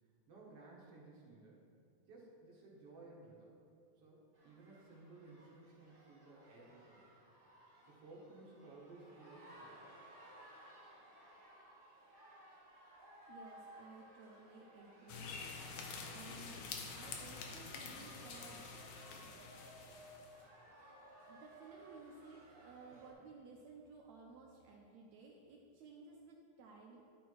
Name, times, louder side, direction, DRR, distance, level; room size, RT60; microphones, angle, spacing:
voice 1, 0.3-1.6 2.0-3.6 4.0-7.1 7.9-10.0 23.1-23.2, right 2 dB, 60° right, -4 dB, 2.1 m, -57 dB
sound 1, 4.3-23.1, right 1 dB, 25° right, 1.1 m, -59 dB
voice 2, 13.3-15.6 16.1-16.6 17.0-18.7 19.6-19.7 21.3-27.0, right 3 dB, 75° right, -1 dB, 1.9 m, -56 dB
sound 2, 15.1-20.4, left 4 dB, 70° left, 1.9 m, -48 dB
11.5 x 4.4 x 4.6 m, 2.5 s
omnidirectional pair, 3.4 m